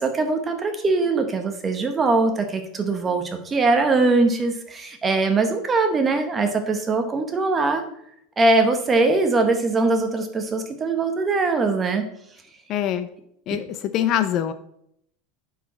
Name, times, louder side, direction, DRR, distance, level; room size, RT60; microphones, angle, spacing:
voice 1, 0.0-7.8 8.4-12.1 13.5-13.6, right 3 dB, 15° right, 5 dB, 0.9 m, -21 dB
voice 2, 12.7-13.1 13.5-14.5, left 10 dB, 35° left, 11 dB, 0.4 m, -24 dB
9.9 x 4.7 x 4.2 m, 0.72 s
supercardioid pair, 165°, 0 cm